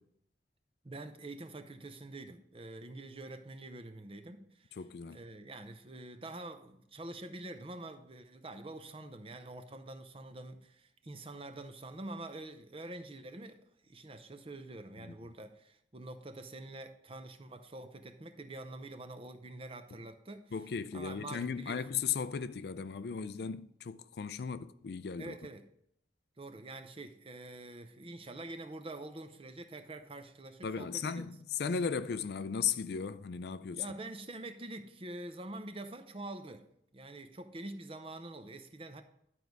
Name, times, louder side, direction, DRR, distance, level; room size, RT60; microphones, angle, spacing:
voice 1, 0.8-4.7 5.1-20.5 20.9-21.8 25.2-25.6 26.4-31.3 33.7-36.6 36.9-39.0, right 2 dB, 30° right, 0.6 m, -46 dB
voice 2, 4.8-5.2 15.0-15.3 19.9-20.0 20.5-25.4 30.6-33.8, left 6 dB, 55° left, 0.4 m, -36 dB
11.5 x 4.7 x 5.3 m
head